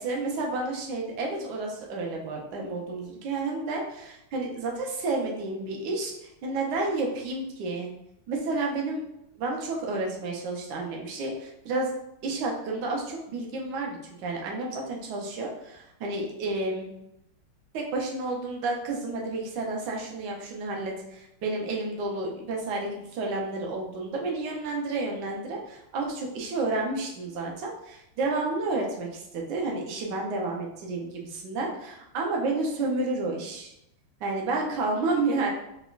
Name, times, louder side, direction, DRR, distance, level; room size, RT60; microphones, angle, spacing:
voice 1, 0.0-7.9 8.3-9.0 9.4-11.9 12.2-16.9 17.7-33.7 34.2-35.5, right 3 dB, 70° right, -1 dB, 1.2 m, -31 dB
4.9 x 2.1 x 2.4 m, 0.83 s
omnidirectional pair, 2.2 m